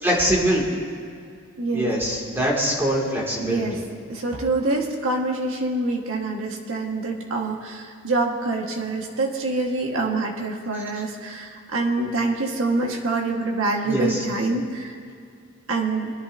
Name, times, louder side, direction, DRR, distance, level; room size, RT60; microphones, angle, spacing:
voice 1, 0.0-0.9 1.7-3.8 13.8-14.2, equal, 10° right, -5 dB, 2.3 m, -23 dB
voice 2, 3.4-3.8 4.1-14.9 15.7-16.1, right 2 dB, 70° right, 0 dB, 1.6 m, -26 dB
23.0 x 11.0 x 2.7 m, 2.3 s
head